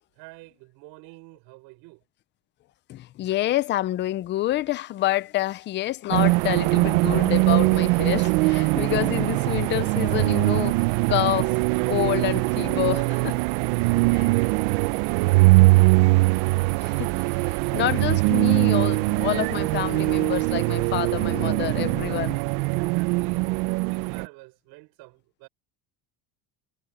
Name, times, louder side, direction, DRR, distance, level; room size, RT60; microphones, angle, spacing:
voice 1, 0.2-2.0 13.4-18.0 20.9-25.5, right 24 dB, 70° right, 5.3 m, -49 dB
voice 2, 2.9-10.7 11.1-11.5 11.9-13.3 16.8-17.1 17.7-22.4, left 15 dB, 30° left, 0.4 m, -27 dB
sound 1, 6.1-24.3, right 24 dB, 90° right, 0.7 m, -21 dB
cardioid pair, 160°, 41 cm